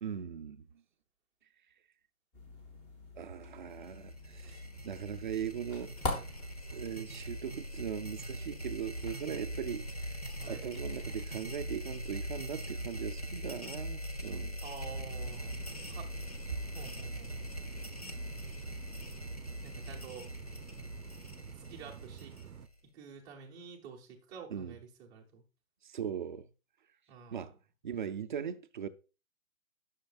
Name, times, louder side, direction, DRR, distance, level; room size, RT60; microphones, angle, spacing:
voice 1, 0.0-0.6 3.2-5.9 6.7-10.2 10.5-14.6 24.5-24.7 25.8-26.5 27.3-27.6 27.8-28.9, right 8 dB, 35° right, 0.5 m, -39 dB
sound 1, 2.3-11.6, left 2 dB, 15° left, 1.3 m, -45 dB
sound 2, 3.7-22.8, equal, 30° left, 0.3 m, -42 dB
voice 2, 14.6-15.5 15.9-16.1 16.7-17.5 19.6-20.3 21.5-22.4 22.9-25.4 27.1-27.5, right 6 dB, 10° right, 0.8 m, -49 dB
sound 3, 14.9-22.7, right 9 dB, 85° right, 0.7 m, -50 dB
10.0 x 6.4 x 2.4 m
hypercardioid pair, 155°, 42 cm